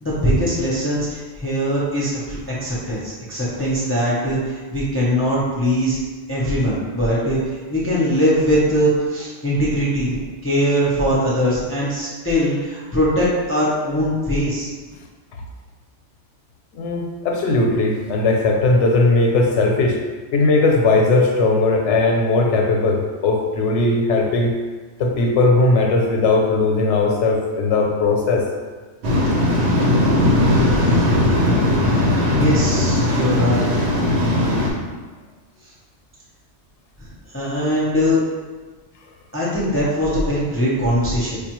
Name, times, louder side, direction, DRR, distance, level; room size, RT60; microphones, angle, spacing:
voice 1, 0.0-6.0 6.3-14.7 32.3-33.8 35.6-35.7 37.3-38.2 39.3-41.4, equal, 15° left, -8 dB, 0.5 m, -21 dB
voice 2, 16.7-20.0 20.3-24.5 25.0-28.4, left 3 dB, 80° left, 1 dB, 0.9 m, -18 dB
Waves surf, 29.0-34.7, left 1 dB, 75° right, 1.0 m, -18 dB
5.0 x 2.3 x 2.9 m, 1.4 s
omnidirectional pair, 1.2 m